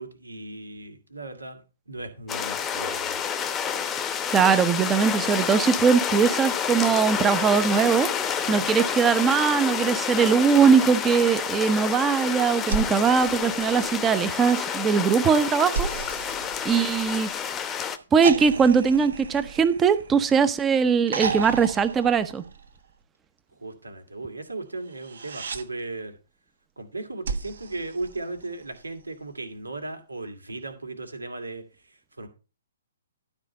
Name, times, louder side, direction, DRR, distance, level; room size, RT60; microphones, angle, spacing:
voice 1, 0.0-3.2 8.4-8.7 23.6-26.2 26.8-32.3, right 2 dB, 80° right, 6 dB, 2.4 m, -37 dB
sound 1, 2.3-18.0, left 8 dB, 15° left, 0.9 m, -29 dB
voice 2, 4.3-15.9 16.1-16.3 16.6-17.3 18.1-22.4, right 6 dB, 15° right, 13 dB, 0.8 m, -21 dB
sound 2, 12.6-14.2 15.7-17.4 18.2-20.5 21.1-22.9 24.9-25.7 27.2-28.7 30.3-30.4, right 5 dB, 60° right, 1.3 m, -34 dB
12.0 x 5.1 x 5.4 m, 0.32 s
figure-of-eight pair, 125°, 0 cm